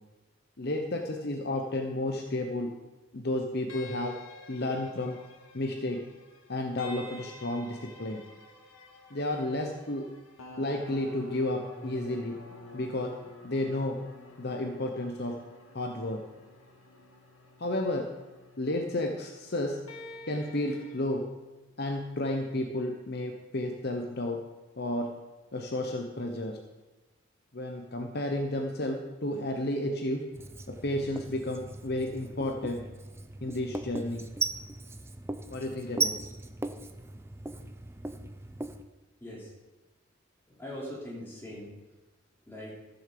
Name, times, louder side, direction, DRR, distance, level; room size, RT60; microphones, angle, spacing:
voice 1, 0.6-2.7 3.1-4.2 4.5-5.2 5.5-6.0 6.5-8.2 9.1-10.0 10.6-12.3 12.7-13.1 13.4-14.0 14.4-15.4 15.7-16.2 17.6-18.1 18.6-19.8 20.3-21.2 21.8-24.4 24.8-25.1 25.5-26.6 27.5-30.2 30.7-32.8 33.4-34.2 35.5-36.2, left 1 dB, 50° left, 3 dB, 1.0 m, -32 dB
sound 1, 3.7-21.0, left 2 dB, 90° left, 1.9 m, -50 dB
Writing, 30.3-38.8, right 3 dB, 10° right, 0.5 m, -37 dB
voice 2, 39.2-39.5 40.5-41.7 42.5-42.8, left 1 dB, 10° left, -4 dB, 3.2 m, -41 dB
14.0 x 7.3 x 6.8 m, 1.2 s
head